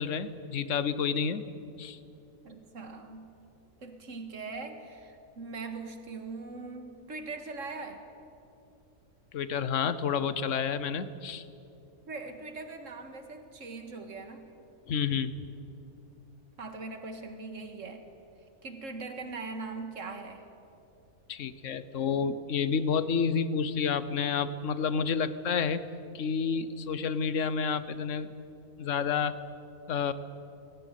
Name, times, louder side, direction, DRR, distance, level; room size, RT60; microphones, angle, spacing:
voice 1, 0.0-1.4 1.8-2.0 9.3-11.4 14.9-15.3 21.3-25.8 26.1-28.3 28.8-29.4 29.9-30.1, left 6 dB, 60° left, 14 dB, 1.2 m, -29 dB
voice 2, 2.4-3.4 3.8-8.1 12.1-14.5 16.6-18.1 18.6-20.5, right 3 dB, 60° right, 6 dB, 2.1 m, -41 dB
19.0 x 17.5 x 9.2 m, 2.7 s
omnidirectional pair, 1.5 m